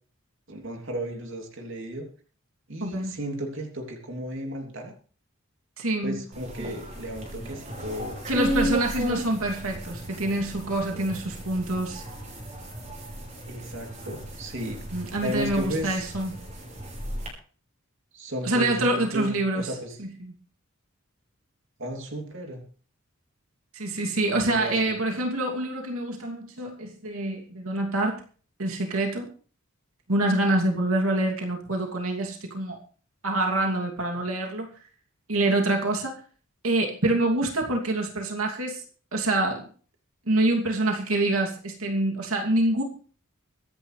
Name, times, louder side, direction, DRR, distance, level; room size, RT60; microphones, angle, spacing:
voice 1, 0.5-2.1 2.7-4.9 6.0-8.2 13.5-14.8 15.2-16.1 18.1-20.0 21.8-22.6 24.3-25.0, equal, 60° right, 2 dB, 3.1 m, -34 dB
voice 2, 2.8-3.1 5.8-6.2 8.3-12.0 14.9-16.3 18.4-19.7 20.0-20.3 23.7-28.2 28.6-29.3 30.1-32.8 33.2-34.7 35.3-36.1 36.6-38.8 39.1-39.6 40.3-42.8, right 1 dB, 90° right, 1 dB, 2.8 m, -26 dB
sound 1, 6.3-17.3, right 1 dB, 35° right, 5.7 m, -34 dB
24.5 x 10.5 x 3.3 m, 0.42 s
head